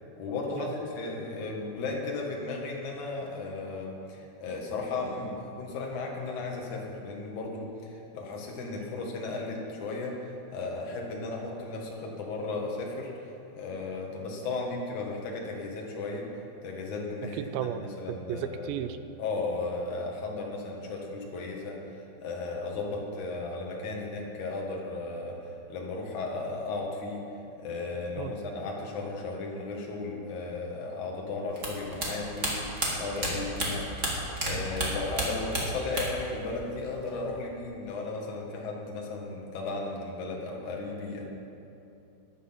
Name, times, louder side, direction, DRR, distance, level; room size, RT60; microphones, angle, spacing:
voice 1, 0.2-13.1 13.6-16.3 16.6-18.8 19.2-21.8 22.2-27.2 27.6-41.2, left 3 dB, 55° left, -1 dB, 2.5 m, -35 dB
voice 2, 18.1-19.0 28.2-28.3, right 10 dB, 85° right, 10 dB, 2.8 m, -33 dB
sound 1, 31.6-34.5 34.8-36.3 36.5-37.3, right 1 dB, 30° right, 1.4 m, -31 dB
14.5 x 10.0 x 5.8 m, 2.8 s
omnidirectional pair, 5.2 m